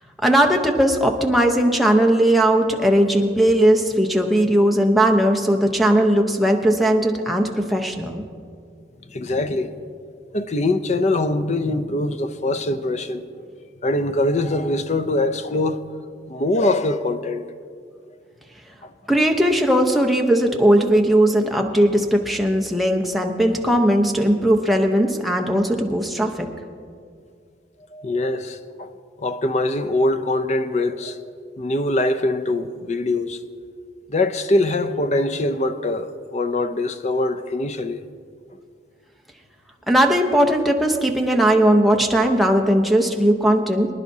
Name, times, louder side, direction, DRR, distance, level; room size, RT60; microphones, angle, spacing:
voice 1, 0.2-8.2 19.1-26.5 39.9-43.9, right 1 dB, ahead, 0.8 m, -18 dB
voice 2, 9.1-9.7 10.3-13.2 13.8-15.8 16.3-17.4 18.8-18.9 27.9-28.9 29.2-31.2 31.6-33.4 34.1-38.0, left 2 dB, 40° left, 0.5 m, -23 dB
24.0 x 10.5 x 2.8 m
head